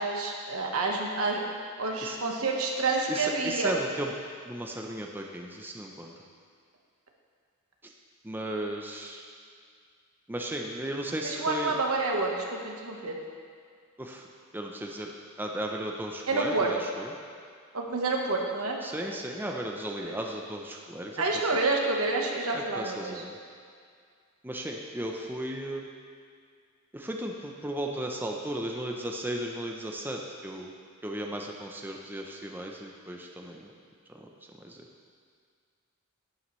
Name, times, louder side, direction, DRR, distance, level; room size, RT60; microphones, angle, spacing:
voice 1, 0.0-1.4 1.8-3.8 11.2-13.1 16.3-16.7 17.7-18.8 20.0-20.2 21.2-23.2, right 3 dB, 85° right, 0 dB, 1.3 m, -28 dB
voice 2, 3.1-4.1 4.5-6.1 8.2-9.2 10.3-11.7 14.0-14.2 14.5-15.1 15.4-17.1 18.8-21.2 22.5-23.3 24.4-25.9 26.9-30.7 31.0-33.7 34.2-34.3 34.6-34.8, right 1 dB, 10° right, 1 dB, 0.6 m, -35 dB
11.5 x 10.0 x 3.2 m, 2.1 s
head